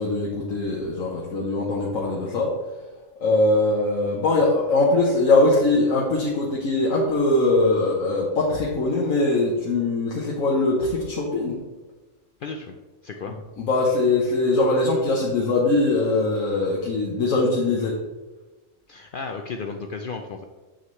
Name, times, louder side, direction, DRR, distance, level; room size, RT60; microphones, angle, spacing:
voice 1, 0.0-2.5 3.2-11.6 13.6-17.9, left 2 dB, 90° left, -4 dB, 1.4 m, -21 dB
voice 2, 12.4-12.8 13.0-13.4 18.9-20.4, left 4 dB, 60° left, 4 dB, 0.5 m, -33 dB
7.4 x 6.4 x 3.1 m, 1.2 s
omnidirectional pair, 1.3 m